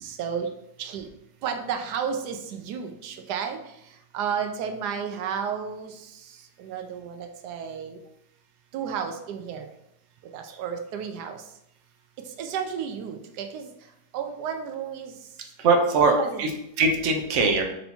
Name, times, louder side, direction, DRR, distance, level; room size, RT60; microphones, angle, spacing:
voice 1, 0.0-0.5 0.8-1.1 1.4-3.6 4.1-5.9 6.6-8.0 8.7-9.7 10.3-11.4 12.4-13.7 14.1-15.1 16.0-16.4, right 7 dB, 90° right, 6 dB, 1.2 m, -32 dB
voice 2, 15.6-16.5 16.8-17.6, right 3 dB, 55° right, 3 dB, 0.9 m, -21 dB
4.5 x 2.7 x 4.2 m, 0.79 s
omnidirectional pair, 1.7 m